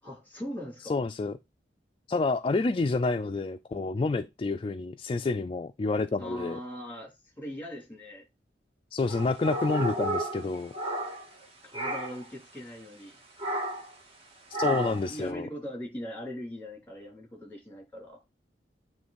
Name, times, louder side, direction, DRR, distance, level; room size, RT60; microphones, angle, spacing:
voice 1, 0.0-1.0 6.2-8.3 11.6-13.2 14.7-18.2, equal, 10° left, 3.0 m, -40 dB
voice 2, 0.8-1.3 2.1-6.6 8.9-10.7 14.6-15.5, left 3 dB, 30° left, 0.3 m, -28 dB
sound 1, 9.0-11.4 11.7-12.3 13.4-13.9 14.5-15.1, right 1 dB, 30° right, 1.6 m, -32 dB
9.1 x 3.2 x 4.0 m
head